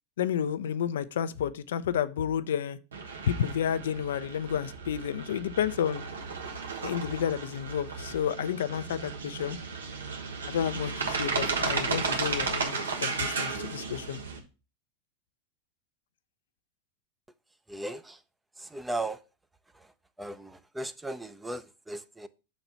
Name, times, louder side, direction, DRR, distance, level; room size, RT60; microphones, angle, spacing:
voice 1, 0.2-2.8 3.3-6.0 6.8-9.6 10.5-14.2, left 9 dB, 75° left, 0.4 m, -31 dB
sound 1, 2.9-14.4, right 5 dB, 85° right, 1.2 m, -34 dB
voice 2, 17.7-18.2 18.6-19.2 19.7-19.9 20.2-22.3, right 2 dB, 10° right, 0.6 m, -37 dB
5.8 x 4.1 x 5.5 m
hypercardioid pair, 100°, 0 cm